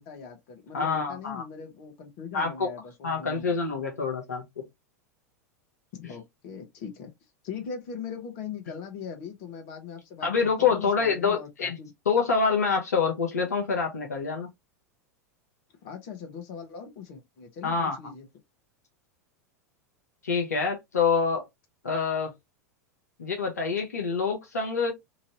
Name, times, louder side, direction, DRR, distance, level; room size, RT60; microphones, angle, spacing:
voice 1, 0.0-3.6 5.9-7.1 7.4-11.9 15.8-18.3, left 6 dB, 50° left, 1.1 m, -40 dB
voice 2, 0.7-1.4 2.3-2.7 3.0-4.6 10.2-11.8 12.1-14.5 17.6-18.0 20.2-21.4 21.8-22.3 23.2-24.9, left 5 dB, 75° left, 0.8 m, -26 dB
3.0 x 2.6 x 2.9 m
figure-of-eight pair, 90°, 9 cm